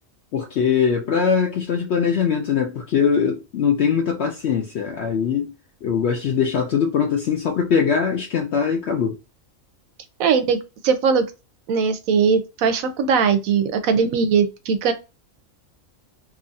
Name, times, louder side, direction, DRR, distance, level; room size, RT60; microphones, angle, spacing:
voice 1, 0.3-5.5 5.8-9.2, left 6 dB, 65° left, 0.7 m, -21 dB
voice 2, 10.2-10.6 10.8-11.2 11.7-14.9, right 6 dB, 90° right, 1.0 m, -19 dB
2.8 x 2.4 x 2.6 m
omnidirectional pair, 1.4 m